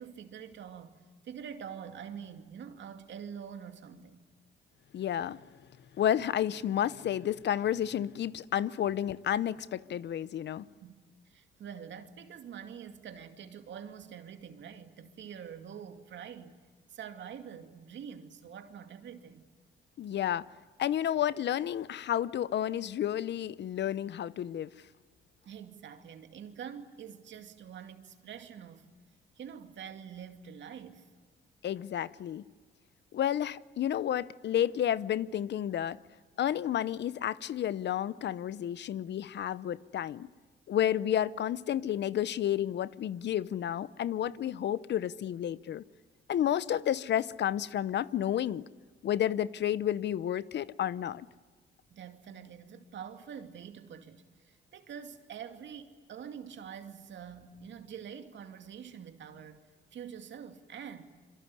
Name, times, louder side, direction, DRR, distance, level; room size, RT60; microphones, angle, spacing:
voice 1, 0.0-4.3 10.8-16.6 16.9-19.5 25.4-28.9 29.4-31.1 51.9-59.7 59.9-61.1, right 8 dB, 65° right, 2.4 m, -46 dB
voice 2, 4.9-5.4 6.0-10.7 20.0-20.5 20.8-24.7 31.6-32.4 33.1-36.0 36.4-40.3 40.7-45.8 46.3-48.6 49.0-51.3, left 10 dB, 60° left, 0.8 m, -31 dB
26.0 x 23.5 x 9.8 m
cardioid pair, 90°, 20 cm